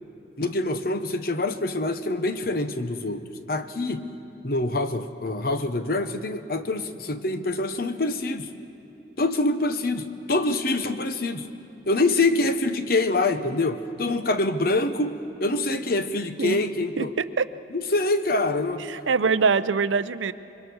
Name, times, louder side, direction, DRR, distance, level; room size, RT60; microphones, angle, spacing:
voice 1, 0.4-4.1 4.4-8.5 9.2-11.5 11.9-17.1 17.7-18.9, left 2 dB, 50° left, 9 dB, 1.0 m, -25 dB
voice 2, 18.9-20.3, right 5 dB, 90° right, 14 dB, 0.6 m, -23 dB
26.5 x 23.5 x 6.3 m, 2.9 s
head